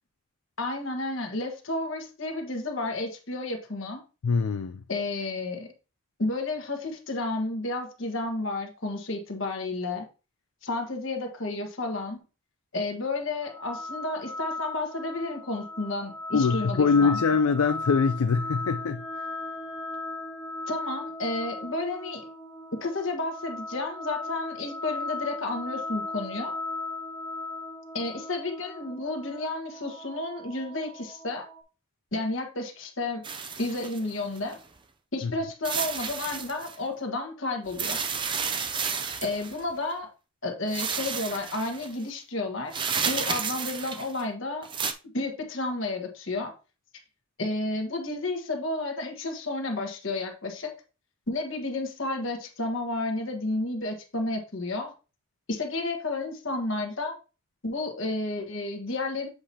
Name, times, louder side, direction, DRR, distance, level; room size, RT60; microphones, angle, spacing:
voice 1, 0.6-4.0 4.9-5.7 6.2-10.1 10.6-12.2 12.7-17.2 20.7-22.2 22.8-26.5 27.9-31.5 32.1-33.2 33.6-34.6 35.1-38.0 39.2-40.1 40.4-44.7 45.1-46.5 47.4-50.7 51.3-54.9 55.5-57.2 57.6-59.3, left 2 dB, 60° left, 1.4 m, -31 dB
voice 2, 4.2-4.8 16.3-19.3 35.2-35.3, left 5 dB, 75° left, 0.4 m, -24 dB
sound 1, 13.4-31.6, left 2 dB, 15° left, 1.4 m, -37 dB
sound 2, 33.2-34.5 35.6-36.8 37.7-39.6 40.7-41.9 42.7-44.2 44.6-44.9, right 6 dB, 20° right, 0.5 m, -31 dB
7.9 x 4.8 x 2.8 m
head